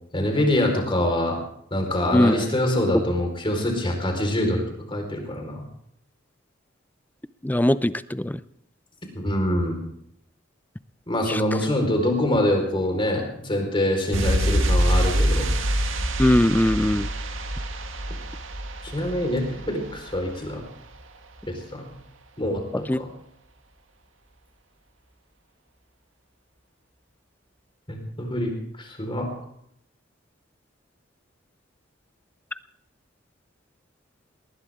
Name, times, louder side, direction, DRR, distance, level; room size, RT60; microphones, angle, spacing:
voice 1, 0.1-1.4 1.7-5.6 9.1-9.8 11.1-15.5 18.9-20.6 21.7-21.9 22.4-23.1 27.9-29.3, left 1 dB, 25° left, 3 dB, 4.5 m, -25 dB
voice 2, 7.4-8.4 11.3-11.4 16.2-17.1 22.9-23.0, left 1 dB, 10° left, 15 dB, 0.5 m, -20 dB
sound 1, 14.1-20.6 20.9-21.0, right 1 dB, 80° right, 1.9 m, -25 dB
20.0 x 19.5 x 3.7 m, 0.72 s
head